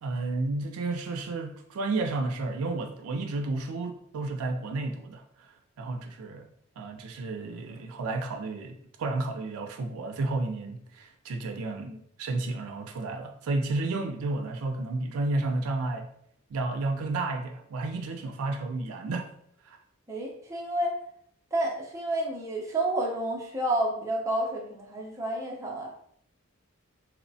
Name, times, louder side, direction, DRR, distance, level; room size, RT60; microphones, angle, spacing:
voice 1, 0.0-5.2 5.8-6.5 6.8-16.1 16.5-19.3 19.7-19.8, right 2 dB, 80° right, 0.4 m, -32 dB
voice 2, 20.1-21.0 21.5-25.9, right 1 dB, 15° right, 0.4 m, -30 dB
2.9 x 2.0 x 2.6 m
head